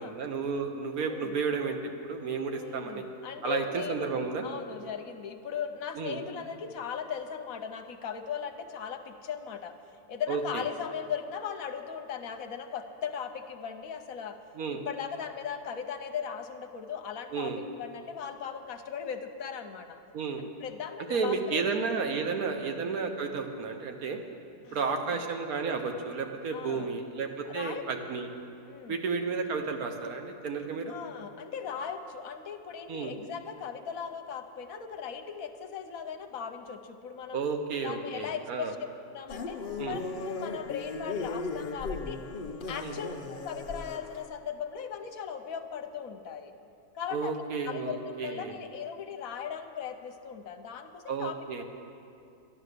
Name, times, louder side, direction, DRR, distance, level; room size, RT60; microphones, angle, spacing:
voice 1, 0.0-3.1 3.4-4.4 5.9-6.2 10.3-10.6 14.6-14.8 17.3-17.6 20.1-20.4 21.1-24.2 24.7-28.3 28.9-30.9 32.9-33.1 37.3-38.7 39.8-40.0 42.8-43.0 47.1-48.6 51.1-51.6, right 5 dB, 60° right, 5 dB, 1.4 m, -32 dB
voice 2, 1.1-1.4 2.5-9.7 10.1-14.4 14.7-20.0 20.4-21.6 22.4-22.6 24.6-25.2 26.5-26.9 27.4-27.8 28.7-29.0 30.9-37.4 37.8-38.8 39.1-42.2 42.7-46.5 46.9-51.6, left 7 dB, 60° left, 7 dB, 1.1 m, -38 dB
sound 1, 39.3-44.3, left 3 dB, 80° left, 0.4 m, -37 dB
11.5 x 11.5 x 6.7 m, 2.6 s
omnidirectional pair, 1.9 m